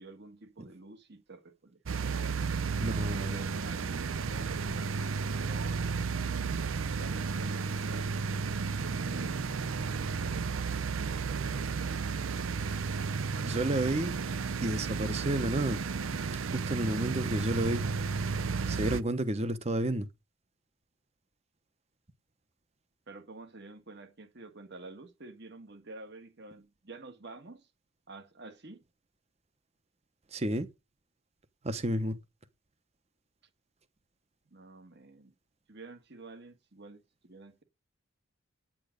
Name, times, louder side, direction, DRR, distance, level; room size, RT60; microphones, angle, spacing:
voice 1, 0.0-2.4 3.1-5.9 6.8-8.2 8.8-9.4 10.3-10.6 11.0-12.0 23.1-27.7 28.1-28.8 34.5-35.3 35.7-37.6, right 3 dB, 55° right, 1.5 m, -49 dB
sound 1, 1.9-19.0, right 5 dB, 70° right, 0.5 m, -33 dB
voice 2, 2.8-3.4 13.4-14.2 14.6-15.8 16.5-17.9 18.7-20.1 30.3-30.7 31.6-32.2, right 1 dB, 30° right, 0.9 m, -31 dB
9.2 x 8.8 x 5.1 m
head